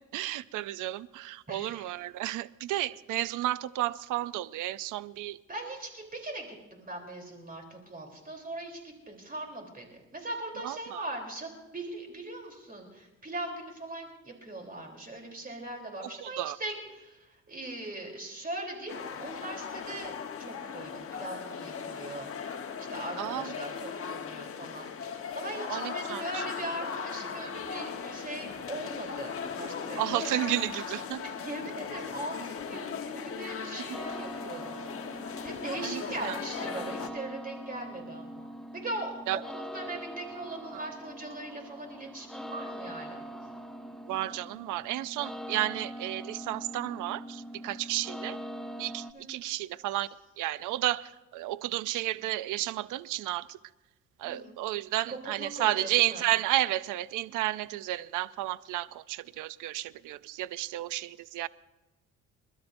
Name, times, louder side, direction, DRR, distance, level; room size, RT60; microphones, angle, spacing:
voice 1, 0.1-5.4 10.6-11.0 16.0-16.6 23.2-23.5 25.7-26.4 30.0-31.2 33.6-33.8 35.8-36.4 39.3-39.4 40.7-40.9 44.1-48.4 48.8-50.1 50.4-53.6 54.2-61.5, right 15 dB, 90° right, 0.6 m, -32 dB
voice 2, 1.5-1.8 5.5-22.3 22.8-30.3 31.1-38.4 38.7-43.2 49.1-49.4 54.2-54.5 55.1-56.2, right 1 dB, 30° right, 3.5 m, -40 dB
sound 1, 18.9-37.1, left 6 dB, 45° left, 1.2 m, -38 dB
sound 2, 33.9-49.1, equal, ahead, 0.7 m, -42 dB
29.5 x 12.5 x 2.6 m
cardioid pair, 90°, 30 cm